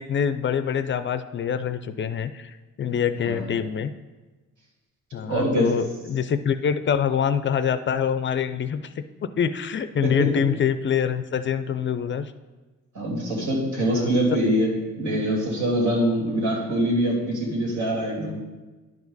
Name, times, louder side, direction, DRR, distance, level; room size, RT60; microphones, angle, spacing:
voice 1, 0.0-2.5 2.8-3.9 5.1-8.9 9.2-12.2 13.9-14.1, left 7 dB, 40° left, 12 dB, 0.4 m, -25 dB
voice 2, 5.2-5.7 10.0-10.3 12.9-18.4, right 1 dB, 75° right, -2 dB, 2.9 m, -24 dB
10.5 x 5.0 x 4.0 m, 1.2 s
cardioid pair, 90°, 30 cm